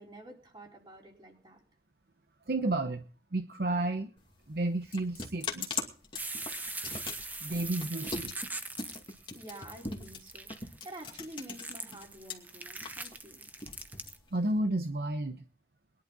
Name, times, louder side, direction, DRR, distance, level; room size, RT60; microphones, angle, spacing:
voice 1, 0.0-1.6 9.3-13.5, right 1 dB, 25° right, 0 dB, 4.2 m, -49 dB
voice 2, 2.5-3.0 3.3-4.1 4.5-5.8 7.4-8.3 14.3-15.4, right 2 dB, 60° right, 7 dB, 0.9 m, -31 dB
sound 1, 4.2-12.3 12.7-14.6, left 4 dB, 30° left, 2.4 m, -40 dB
sound 2, 6.2-14.2, right 3 dB, 10° right, 0.9 m, -42 dB
21.5 x 11.0 x 4.0 m, 0.41 s
head